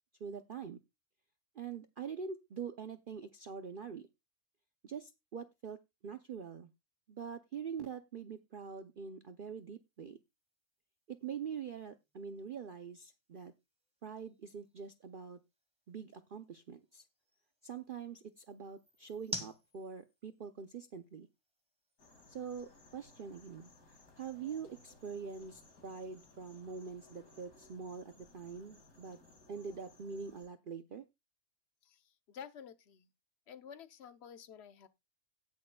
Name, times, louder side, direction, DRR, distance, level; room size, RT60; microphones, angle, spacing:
voice 1, 0.2-0.8 1.5-4.1 4.8-6.7 7.1-10.2 11.1-13.5 14.0-15.4 15.9-17.0 17.6-21.3 22.3-29.2 29.5-31.1, right 6 dB, 55° right, 0.6 m, -44 dB
sound 1, 9.5-23.7, equal, 5° right, 1.6 m, -53 dB
sound 2, 22.0-30.5, left 2 dB, 75° left, 2.9 m, -61 dB
voice 2, 31.8-33.1 33.5-34.9, left 7 dB, 50° left, 1.0 m, -51 dB
18.0 x 6.5 x 2.3 m
omnidirectional pair, 1.6 m